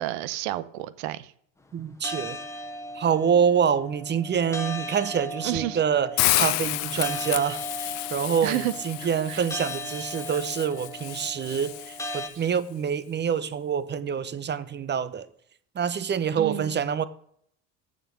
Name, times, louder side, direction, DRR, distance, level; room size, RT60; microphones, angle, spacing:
voice 1, 0.0-1.3 5.4-5.8 6.3-6.5 8.4-8.7 9.3-9.5 11.5-11.6 16.4-16.7, right 15 dB, 85° right, 0.8 m, -30 dB
voice 2, 1.7-2.4 2.9-15.3 15.7-17.0, right 7 dB, 30° right, 0.8 m, -26 dB
sound 1, 2.0-12.3, equal, 10° left, 1.4 m, -38 dB
Hiss, 6.2-12.2, left 20 dB, 80° left, 0.6 m, -30 dB
7.2 x 6.5 x 7.1 m
supercardioid pair, 95°, 35 cm